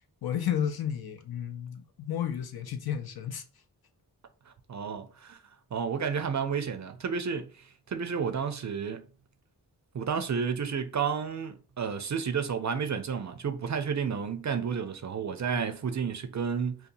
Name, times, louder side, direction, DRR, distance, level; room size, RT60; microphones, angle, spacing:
voice 1, 0.2-3.4 15.5-15.6, left 9 dB, 65° left, 0.5 m, -32 dB
voice 2, 4.5-5.4 5.7-9.0 9.9-16.8, right 6 dB, 45° right, 0.5 m, -31 dB
2.7 x 2.3 x 2.6 m
cardioid pair, 45°, 40 cm